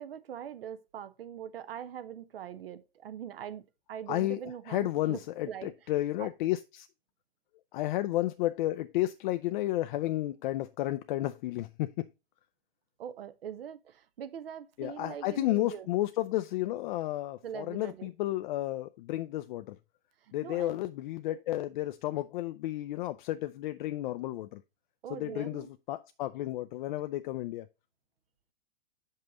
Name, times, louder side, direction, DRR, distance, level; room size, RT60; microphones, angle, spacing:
voice 1, 0.0-3.6 3.9-5.2 5.5-5.7 6.2-6.3 13.0-15.9 17.4-18.1 20.4-20.8 25.0-25.7, right 9 dB, 75° right, 0.9 m, -42 dB
voice 2, 4.1-4.4 4.7-6.9 7.7-11.9 14.8-19.8 20.3-24.6 25.1-27.7, left 15 dB, 55° left, 0.5 m, -32 dB
6.6 x 5.5 x 3.7 m
hypercardioid pair, 115°, 29 cm